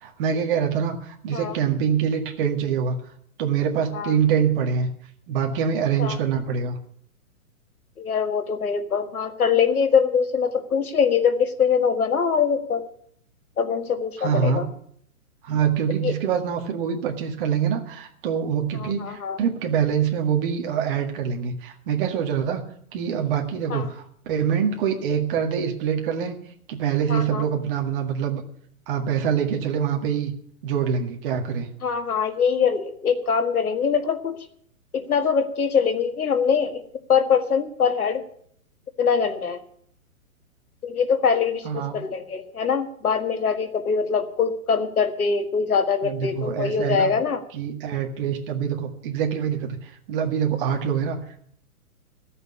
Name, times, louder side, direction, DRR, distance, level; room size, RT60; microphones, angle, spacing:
voice 1, 0.0-3.0 3.4-4.9 5.3-6.8 14.2-14.7 15.4-22.6 22.9-26.4 26.7-28.4 28.9-30.3 30.6-31.7 41.7-42.0 46.0-47.1 47.5-51.2, right 7 dB, 40° right, 4 dB, 1.8 m, -25 dB
voice 2, 8.0-12.8 13.6-14.7 16.0-16.1 18.8-19.4 23.7-23.9 27.1-27.5 31.8-34.4 34.9-36.8 37.1-38.2 39.0-39.6 40.8-47.4, left 6 dB, 85° left, 9 dB, 1.9 m, -23 dB
13.5 x 6.7 x 9.5 m, 0.63 s
hypercardioid pair, 140°, 43 cm